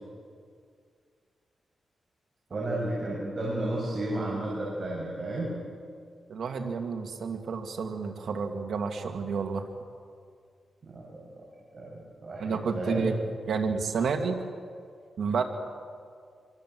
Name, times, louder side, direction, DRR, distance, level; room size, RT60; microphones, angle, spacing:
voice 1, 2.5-5.6 10.8-11.3 11.7-13.1, right 1 dB, 45° right, -4 dB, 7.7 m, -32 dB
voice 2, 6.3-9.6 12.4-13.2 13.5-14.4 15.2-15.4, right 5 dB, 75° right, 5 dB, 2.1 m, -30 dB
26.0 x 25.0 x 7.7 m, 2.2 s
cardioid pair, 80°, 0 cm